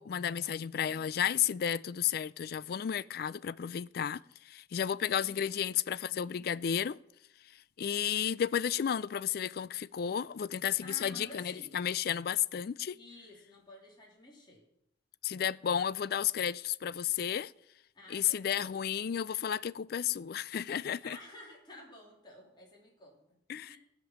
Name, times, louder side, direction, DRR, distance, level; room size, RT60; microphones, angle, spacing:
voice 1, 0.0-4.2 4.5-7.0 7.8-13.0 15.2-17.5 18.1-21.2 23.5-23.8, left 9 dB, 55° left, 0.4 m, -32 dB
voice 2, 5.0-5.7 10.8-11.7 12.9-14.6 17.9-18.7 21.0-23.4 23.7-23.8, left 1 dB, 25° left, 3.0 m, -52 dB
15.5 x 5.2 x 7.2 m
head